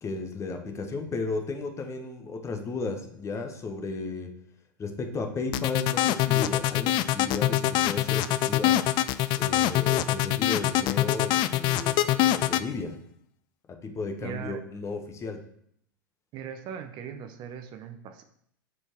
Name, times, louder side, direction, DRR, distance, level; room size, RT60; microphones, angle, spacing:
voice 1, 0.0-4.3 4.8-8.8 9.3-13.0 13.7-15.4, left 3 dB, 25° left, 6 dB, 1.2 m, -34 dB
sound 1, 5.5-12.6, left 14 dB, 45° left, 0.4 m, -24 dB
voice 2, 14.2-14.6 16.3-18.2, right 8 dB, 45° right, 7 dB, 0.9 m, -39 dB
8.5 x 4.6 x 4.5 m, 0.68 s
hypercardioid pair, 95°, 11 cm